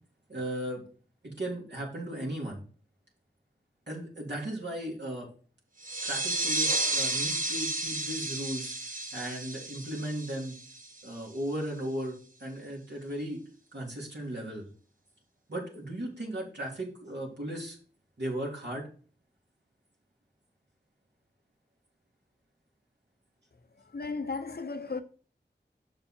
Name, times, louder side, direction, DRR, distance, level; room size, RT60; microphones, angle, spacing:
voice 1, 0.3-0.9 1.2-2.6 3.9-5.3 6.0-10.6 11.0-13.4 13.7-14.7 15.5-17.8 18.2-18.9, right 1 dB, 70° right, 3.2 m, -36 dB
sound 1, 5.8-11.1, right 2 dB, 45° right, 1.2 m, -32 dB
voice 2, 23.8-25.0, left 4 dB, 60° left, 0.8 m, -35 dB
6.8 x 6.6 x 4.4 m
wide cardioid pair, 45°, 18 cm